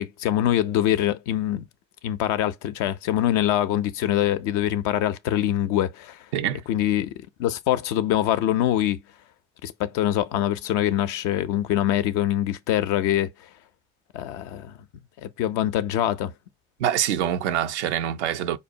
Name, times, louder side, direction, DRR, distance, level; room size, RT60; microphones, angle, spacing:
voice 1, 0.0-1.7 2.0-6.2 6.7-7.1 7.4-9.0 9.6-13.3 14.1-14.8 15.2-16.3, left 12 dB, 65° left, 0.6 m, -24 dB
voice 2, 16.8-18.6, right 10 dB, 80° right, 0.5 m, -25 dB
5.1 x 2.1 x 2.7 m
hypercardioid pair, 45°, 34 cm